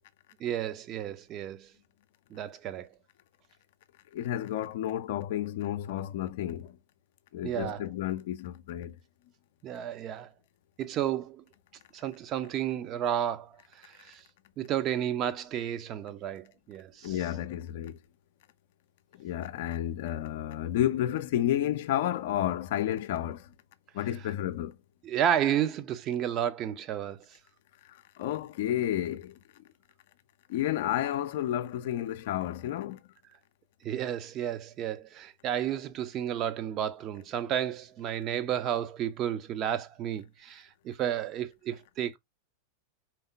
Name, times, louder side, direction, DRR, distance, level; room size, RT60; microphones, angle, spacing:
voice 1, 0.4-1.7 2.3-2.9 7.4-7.9 9.6-10.3 10.8-11.4 11.9-13.6 13.8-14.2 14.6-17.1 25.0-27.2 33.8-42.2, right 10 dB, 35° right, 0.6 m, -32 dB
voice 2, 4.1-6.8 7.3-9.0 17.0-18.0 19.2-23.5 23.9-24.8 27.9-29.4 30.5-33.0, left 12 dB, 55° left, 0.5 m, -31 dB
4.5 x 3.5 x 2.7 m
figure-of-eight pair, 90°, 0 cm